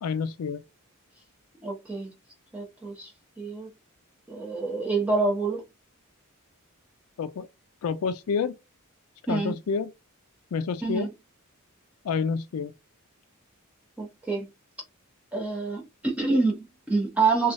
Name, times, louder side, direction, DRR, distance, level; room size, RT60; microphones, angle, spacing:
voice 1, 0.0-0.6 7.2-7.5 7.8-8.5 9.3-9.9 10.5-11.1 12.0-12.7, left 5 dB, 75° left, 0.4 m, -28 dB
voice 2, 1.6-2.1 2.5-3.1 3.4-3.7 4.3-5.6 9.3-9.5 10.8-11.1 14.0-14.5 15.3-17.5, right 3 dB, 5° right, 1.0 m, -27 dB
3.1 x 2.3 x 2.6 m
head